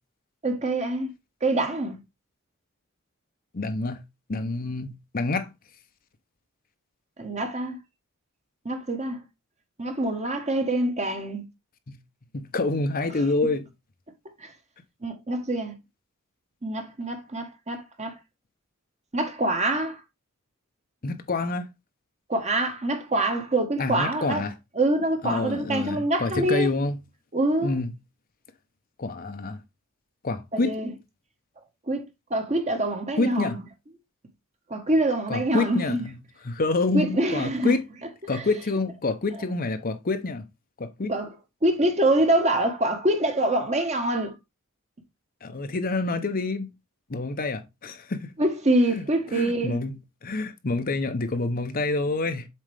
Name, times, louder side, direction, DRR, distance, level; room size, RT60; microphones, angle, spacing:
voice 1, 0.4-1.1 1.4-2.0 7.2-7.8 8.6-9.2 9.8-11.4 14.4-14.5 15.0-15.7 16.6-18.2 19.1-20.0 22.3-24.4 24.7-26.7 27.3-27.8 30.5-30.9 31.9-32.0 32.3-33.6 34.7-36.1 36.9-37.7 38.3-38.4 41.1-41.3 41.6-44.3 48.4-49.8, right 1 dB, 35° right, 1.3 m, -25 dB
voice 2, 3.5-4.0 4.3-5.5 11.9-12.0 12.3-13.7 21.0-21.7 23.8-24.6 25.2-27.0 27.6-27.9 29.0-29.6 30.2-30.7 33.2-33.6 35.3-36.2 36.4-37.8 38.3-40.4 40.8-41.1 45.4-46.7 47.1-48.3 48.9-49.0 49.3-52.5, left 3 dB, 45° left, 0.8 m, -27 dB
7.5 x 4.3 x 3.3 m
head